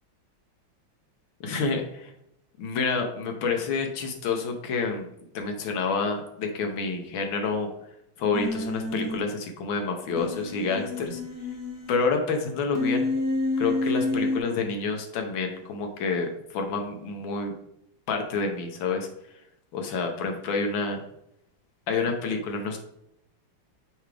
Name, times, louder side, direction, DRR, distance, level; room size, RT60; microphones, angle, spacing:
voice 1, 1.4-2.1 2.6-5.1 5.3-7.7 8.2-11.2 11.9-13.1 13.6-17.5 18.1-19.1 19.7-21.0 21.9-22.8, left 4 dB, 75° left, 4 dB, 1.7 m, -28 dB
Human voice, 8.3-9.2 10.2-11.9 12.7-14.4, left 2 dB, 15° right, 0.9 m, -28 dB
6.3 x 4.7 x 3.4 m, 0.78 s
omnidirectional pair, 2.2 m